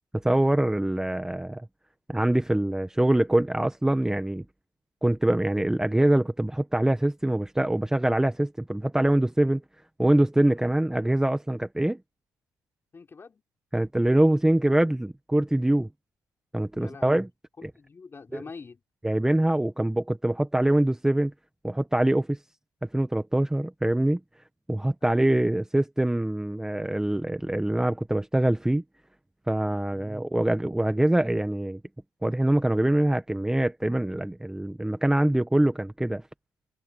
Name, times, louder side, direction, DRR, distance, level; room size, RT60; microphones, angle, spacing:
voice 1, 0.2-1.7 2.1-4.4 5.0-9.6 10.0-12.0 13.7-15.9 16.5-17.3 17.6-17.7 18.3-18.4 19.0-21.3 21.6-22.4 22.8-24.2 24.7-28.8 29.5-31.8 32.2-36.2, right 1 dB, 5° right, 1.2 m, -24 dB
voice 2, 12.9-13.4 16.7-17.2 17.6-18.8 25.0-25.1 29.9-30.1, left 4 dB, 30° left, 3.6 m, -45 dB
cardioid pair, 90°, 8 cm